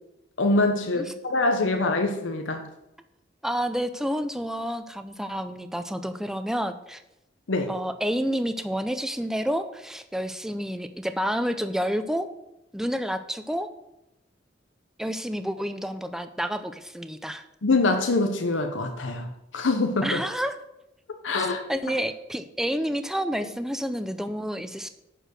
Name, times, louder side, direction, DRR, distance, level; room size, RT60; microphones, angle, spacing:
voice 1, 0.4-2.7 7.5-7.7 17.6-20.2 21.2-21.6, left 2 dB, 80° left, 5 dB, 0.8 m, -24 dB
voice 2, 3.4-7.0 7.7-12.3 12.7-13.7 15.0-17.4 20.0-20.6 21.7-24.9, equal, 5° right, 10 dB, 0.5 m, -29 dB
10.0 x 4.7 x 6.3 m, 0.88 s
head